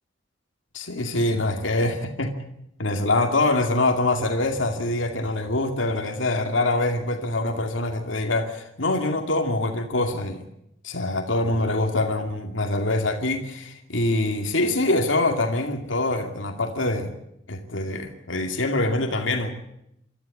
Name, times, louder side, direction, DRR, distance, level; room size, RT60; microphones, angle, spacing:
voice 1, 0.7-2.3 2.8-10.4 10.8-17.1 17.5-19.5, left 2 dB, 90° left, 3 dB, 2.4 m, -24 dB
26.5 x 13.5 x 8.6 m, 0.78 s
head